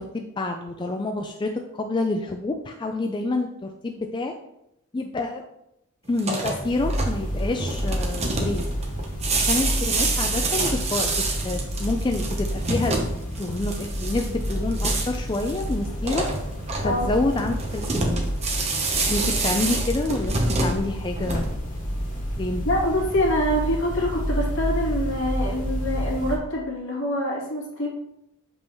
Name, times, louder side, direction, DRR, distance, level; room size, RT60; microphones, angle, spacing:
voice 1, 0.0-4.3 4.9-5.4 6.1-8.7 9.3-11.1 11.4-13.0 13.4-16.2 16.8-18.2 19.1-20.3 20.6-21.5 22.4-22.6, left 2 dB, 20° left, 3 dB, 0.3 m, -28 dB
sound 1, 6.1-21.8, right 3 dB, 30° right, 0.9 m, -28 dB
sound 2, 6.6-26.4, equal, 35° left, 1.9 m, -29 dB
voice 2, 22.6-27.9, left 1 dB, 65° left, -5 dB, 2.6 m, -25 dB
7.0 x 5.4 x 3.0 m, 0.83 s
head